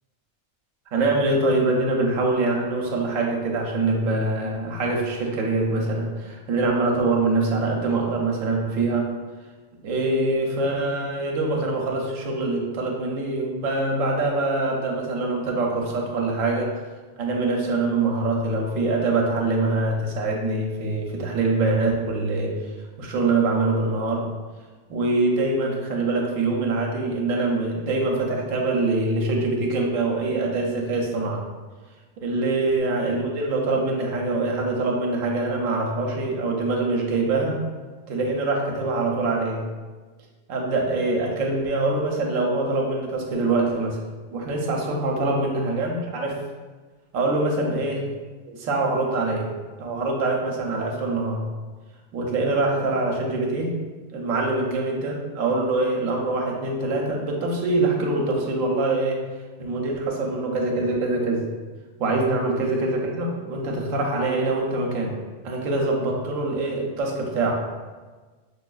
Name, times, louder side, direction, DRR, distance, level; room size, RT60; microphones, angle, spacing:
voice 1, 0.9-9.1 9.8-16.7 17.2-22.5 23.0-24.2 24.9-31.4 32.2-37.6 38.1-39.6 40.5-44.0 44.3-46.4 47.1-48.1 48.5-49.5 49.8-51.5 52.1-53.7 54.1-59.2 59.6-61.4 62.0-65.2 65.4-67.5, right 2 dB, 80° right, 0 dB, 1.0 m, -24 dB
5.0 x 2.2 x 2.3 m, 1.3 s
omnidirectional pair, 1.4 m